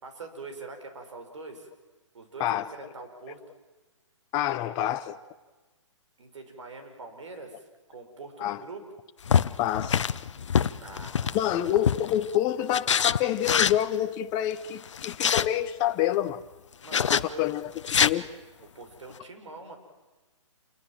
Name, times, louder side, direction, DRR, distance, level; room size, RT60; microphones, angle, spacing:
voice 1, 0.0-1.7 2.1-3.4 6.2-8.8 10.8-11.6 16.8-17.6 18.7-19.8, right 3 dB, 70° right, 5.9 m, -43 dB
voice 2, 4.3-5.2 8.4-8.6 9.6-10.0 11.3-16.4 17.1-17.7 18.0-18.3, left 12 dB, 25° left, 0.8 m, -27 dB
sound 1, 9.2-12.2 12.7-13.8 14.8-15.5 16.9-17.2 17.8-18.1, left 7 dB, 70° left, 0.9 m, -25 dB
28.0 x 22.0 x 7.6 m
hypercardioid pair, 140°, 16 cm